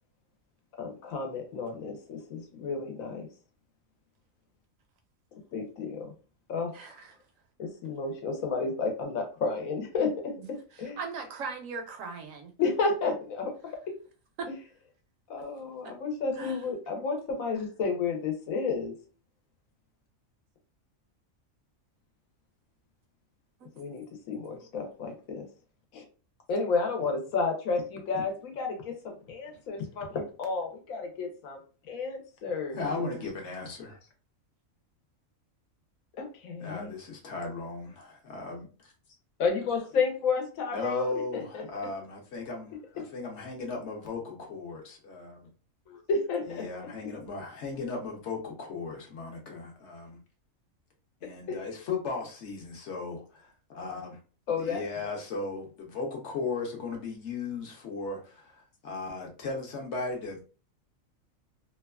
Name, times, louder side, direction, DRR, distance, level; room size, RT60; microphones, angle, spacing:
voice 1, 0.8-3.3 5.5-6.1 6.5-6.7 7.6-11.0 12.6-14.0 15.3-18.9 23.8-25.5 25.9-26.0 26.5-33.0 36.2-36.9 39.4-41.9 43.0-43.1 45.9-46.7 47.0-47.1 51.5-51.6 54.5-54.8, left 4 dB, 80° left, 1.2 m, -32 dB
voice 2, 6.7-7.1 11.0-12.5 16.4-16.6 23.6-23.7 32.9-33.3, right 5 dB, 80° right, 1.0 m, -39 dB
voice 3, 32.8-34.0 36.6-38.9 40.7-45.5 46.6-50.2 51.2-54.2 54.6-60.4, left 3 dB, 60° left, 1.0 m, -36 dB
3.0 x 2.3 x 2.2 m
omnidirectional pair, 1.4 m